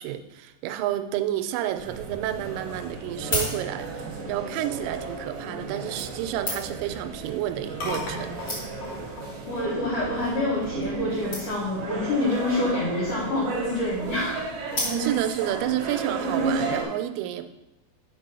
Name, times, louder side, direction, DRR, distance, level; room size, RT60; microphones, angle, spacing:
voice 1, 0.0-8.4 15.0-17.5, right 12 dB, 85° right, 10 dB, 3.0 m, -30 dB
sound 1, 1.8-16.8, right 3 dB, 70° right, 2.1 m, -33 dB
sound 2, 3.2-4.1 5.0-5.2 6.0-6.9 7.8-7.9 8.1-8.2 8.4-9.0 9.7-9.9 10.2-10.3 10.5-10.6 10.8-10.9 11.3-11.8 12.8-13.3 14.7-15.4 15.9-16.0, left 1 dB, 70° left, 0.8 m, -33 dB
sound 3, 5.8-11.2, left 2 dB, 55° left, 2.6 m, -41 dB
voice 2, 9.5-14.4, left 2 dB, 90° left, -5 dB, 1.7 m, -27 dB
6.0 x 5.6 x 5.4 m, 0.92 s
omnidirectional pair, 5.6 m